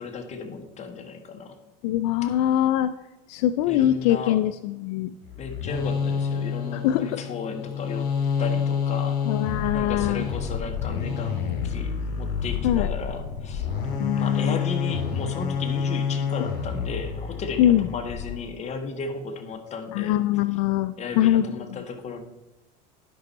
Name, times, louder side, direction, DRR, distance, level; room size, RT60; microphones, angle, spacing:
voice 1, 0.0-1.6 3.7-4.4 5.4-8.1 8.4-9.4 9.7-13.7 14.2-20.2 21.0-22.2, left 5 dB, 35° left, 5 dB, 1.2 m, -35 dB
voice 2, 1.8-2.9 3.3-5.1 6.8-7.2 9.3-10.3 12.6-12.9 14.0-14.6 17.6-17.9 19.9-21.4, left 12 dB, 75° left, 12 dB, 0.4 m, -22 dB
sound 1, 5.3-18.4, left 6 dB, 55° left, 2.5 m, -28 dB
10.5 x 5.5 x 4.0 m, 0.94 s
supercardioid pair, 110°, 21 cm